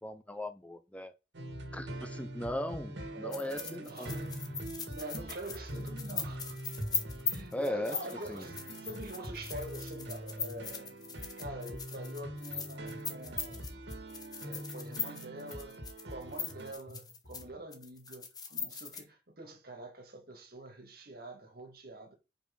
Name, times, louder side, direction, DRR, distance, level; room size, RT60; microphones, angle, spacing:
voice 1, 0.0-1.1 1.7-4.1 7.5-8.0 8.3-8.5, left 1 dB, 10° left, 0.5 m, -38 dB
sound 1, 1.3-16.7, right 1 dB, 85° right, 1.8 m, -43 dB
sound 2, 1.5-3.4 4.2-7.3 8.2-11.3 12.2-15.3 16.2-17.6, left 1 dB, 60° left, 3.0 m, -54 dB
voice 2, 3.1-4.5 4.9-6.6 7.2-10.9 11.4-13.8 14.4-15.8 16.1-22.1, right 1 dB, 60° right, 2.0 m, -45 dB
sound 3, 3.3-17.4 17.7-19.0, left 6 dB, 25° left, 1.2 m, -39 dB
5.3 x 5.2 x 5.3 m
head